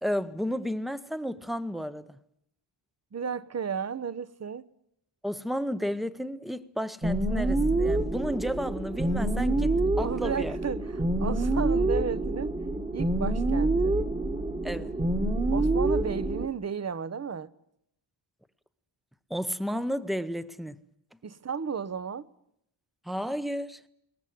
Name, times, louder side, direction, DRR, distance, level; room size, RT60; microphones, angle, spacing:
voice 1, 0.0-2.2 5.2-10.6 14.6-14.9 19.3-20.8 23.1-23.8, equal, ahead, 0.8 m, -32 dB
voice 2, 3.1-4.6 10.0-12.5 12.9-14.0 15.5-17.5 21.2-22.3, right 6 dB, 35° right, 0.9 m, -33 dB
sound 1, 7.0-16.5, right 2 dB, 15° right, 1.5 m, -27 dB
22.0 x 19.5 x 9.3 m
wide cardioid pair, 135°, 47 cm